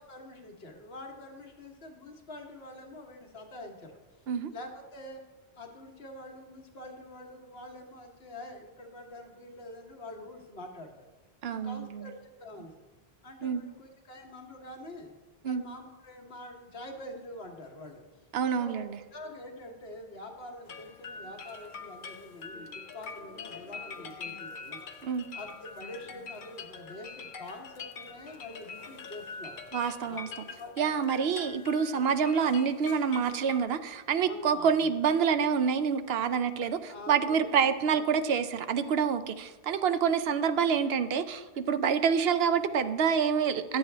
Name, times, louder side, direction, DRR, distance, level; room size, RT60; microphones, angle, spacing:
voice 1, 0.0-4.0 4.5-5.2 5.5-10.9 11.5-12.7 13.2-15.1 15.4-18.0 18.6-29.6 30.1-30.2 30.6-31.2 34.2-34.9 36.8-38.1, left 1 dB, 75° left, 2 dB, 1.4 m, -46 dB
voice 2, 11.4-12.1 13.4-13.6 15.4-15.6 18.3-19.0 25.0-25.3 29.7-30.3 30.8-43.8, right 7 dB, 75° right, 11 dB, 0.8 m, -27 dB
sound 1, 20.7-33.6, left 5 dB, 55° left, 0.8 m, -44 dB
11.5 x 8.0 x 3.3 m, 1.2 s
omnidirectional pair, 1.0 m